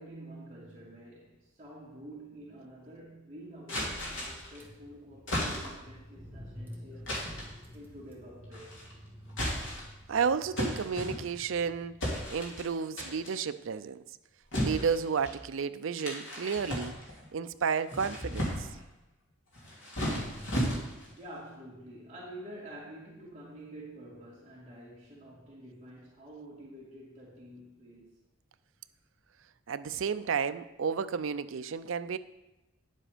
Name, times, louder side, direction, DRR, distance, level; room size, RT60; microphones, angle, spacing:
voice 1, 0.0-7.2 7.7-8.8 20.2-28.2, right 1 dB, 25° right, -9 dB, 2.5 m, -48 dB
Car / Engine, 3.5-3.6 3.8-12.1, equal, 10° right, 1.4 m, -50 dB
sound 1, 3.7-4.6 5.3-5.9 7.1-7.6 8.5-8.9 9.3-10.0 10.6-11.5 12.0-12.7 13.0-13.4 14.5-15.4 16.0-17.3 17.7-18.8 19.5-21.1, equal, 65° left, 2.9 m, -34 dB
voice 2, 10.1-12.0 12.3-14.0 14.6-16.9 17.3-18.7 29.7-32.2, right 6 dB, 75° right, 12 dB, 0.5 m, -32 dB
9.9 x 7.5 x 5.1 m, 0.98 s
head